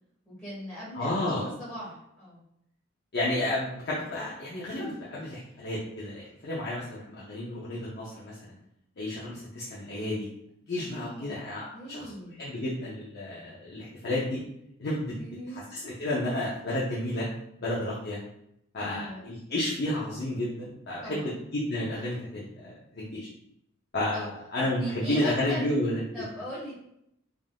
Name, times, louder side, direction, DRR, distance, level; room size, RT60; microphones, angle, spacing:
voice 1, 0.2-2.4 10.8-12.4 15.2-15.7 18.8-19.3 21.0-21.3 24.1-24.3 24.8-25.7 26.1-26.7, equal, ahead, -10 dB, 1.4 m, -40 dB
voice 2, 0.9-1.5 3.1-8.6 9.0-10.3 10.7-12.0 12.4-14.4 14.8-15.1 15.5-17.3 17.6-18.2 18.7-23.3 23.9-24.3 24.5-26.0, left 1 dB, 50° left, -7 dB, 0.6 m, -31 dB
3.4 x 2.5 x 2.2 m, 0.77 s
head